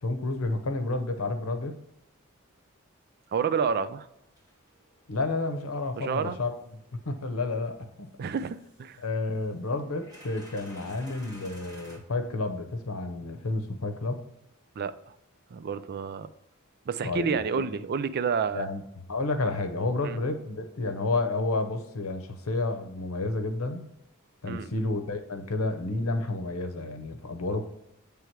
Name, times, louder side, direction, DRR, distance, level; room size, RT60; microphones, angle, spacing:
voice 1, 0.0-1.8 5.1-6.5 7.1-8.1 9.0-14.2 17.0-17.7 18.5-18.8 19.1-23.9 24.4-27.7, left 2 dB, 80° left, 7 dB, 0.8 m, -30 dB
voice 2, 3.3-4.1 6.0-6.4 8.2-9.0 14.8-15.1 15.5-16.3 16.9-18.7 20.0-20.2 24.5-24.7, right 6 dB, 50° right, 12 dB, 0.4 m, -29 dB
sound 1, 4.4-7.7 8.3-9.0 9.5-12.0, left 1 dB, 20° right, 2.6 m, -53 dB
7.9 x 3.5 x 4.6 m, 0.87 s
head